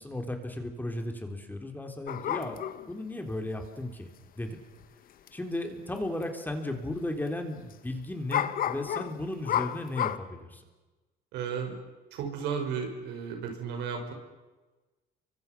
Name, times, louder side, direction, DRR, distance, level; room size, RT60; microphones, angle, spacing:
voice 1, 0.0-4.1 4.4-4.6 5.3-10.6, left 1 dB, 10° left, 4 dB, 3.6 m, -35 dB
sound 1, 2.1-2.9 4.8-4.9 5.3-5.4 6.0-6.2 6.5-6.6 8.3-10.2, left 10 dB, 60° left, 1.2 m, -31 dB
voice 2, 11.3-11.8 12.1-14.1, right 6 dB, 90° right, 4 dB, 5.6 m, -34 dB
30.0 x 24.0 x 6.1 m, 1.2 s
cardioid pair, 110°, 17 cm